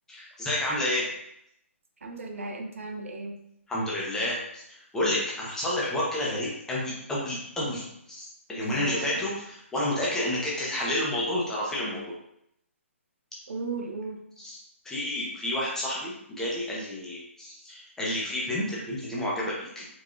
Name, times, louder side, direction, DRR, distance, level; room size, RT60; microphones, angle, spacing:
voice 1, 0.1-1.1 3.7-8.2 8.5-12.0 14.4-19.9, left 1 dB, 5° left, -6 dB, 1.2 m, -30 dB
voice 2, 2.0-3.4 8.6-9.2 13.5-14.2, right 3 dB, 70° right, 2 dB, 0.8 m, -36 dB
4.8 x 3.5 x 2.6 m, 0.77 s
figure-of-eight pair, 135°, 7 cm